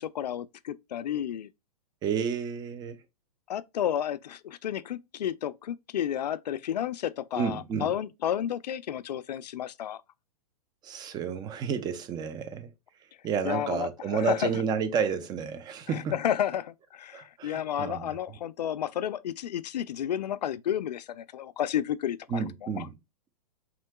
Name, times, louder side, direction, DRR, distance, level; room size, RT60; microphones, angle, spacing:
voice 1, 0.0-1.5 3.5-10.0 13.4-14.5 15.9-22.4 22.8-22.9, left 10 dB, 85° left, 0.4 m, -31 dB
voice 2, 2.0-3.0 7.4-7.9 10.8-12.7 13.2-16.2 17.1-18.2 22.3-22.9, right 6 dB, 20° right, 0.5 m, -31 dB
4.5 x 3.6 x 2.2 m
hypercardioid pair, 130°, 21 cm